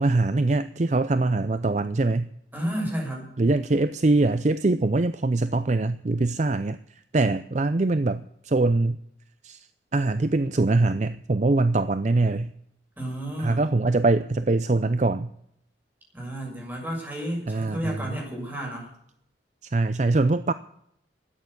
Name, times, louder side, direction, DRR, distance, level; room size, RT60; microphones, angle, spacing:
voice 1, 0.0-2.3 3.4-9.0 9.4-9.7 9.9-12.5 13.4-15.3 17.5-18.2 19.7-20.5, right 2 dB, 40° right, 13 dB, 0.5 m, -23 dB
voice 2, 2.5-3.3 13.0-13.6 16.1-18.9, equal, 10° right, -1 dB, 6.6 m, -31 dB
13.5 x 9.3 x 9.7 m, 0.71 s
head